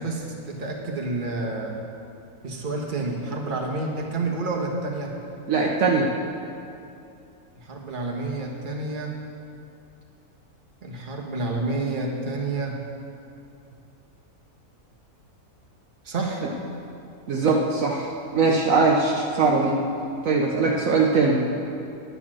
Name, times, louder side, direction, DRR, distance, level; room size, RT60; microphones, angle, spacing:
voice 1, 0.0-1.8 2.4-5.2 7.6-9.2 10.8-12.8 16.0-16.5, right 2 dB, 35° right, -1 dB, 1.4 m, -29 dB
voice 2, 5.5-6.1 17.3-19.8 20.2-21.4, right 4 dB, 65° right, -1 dB, 1.2 m, -21 dB
9.8 x 9.7 x 6.1 m, 2.7 s
omnidirectional pair, 1.6 m